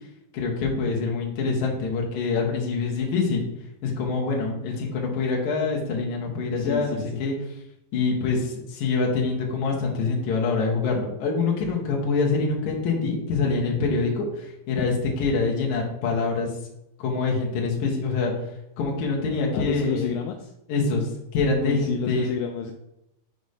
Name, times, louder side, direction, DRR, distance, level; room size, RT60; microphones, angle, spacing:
voice 1, 0.3-3.5 3.8-7.3 7.9-16.5 17.0-18.3 18.8-20.1 20.7-22.3, left 4 dB, 65° left, -1 dB, 2.4 m, -25 dB
voice 2, 6.6-7.2 14.8-14.9 19.5-20.5 21.6-22.7, left 8 dB, 80° left, 3 dB, 2.3 m, -30 dB
6.5 x 3.0 x 5.4 m, 0.84 s
omnidirectional pair, 4.3 m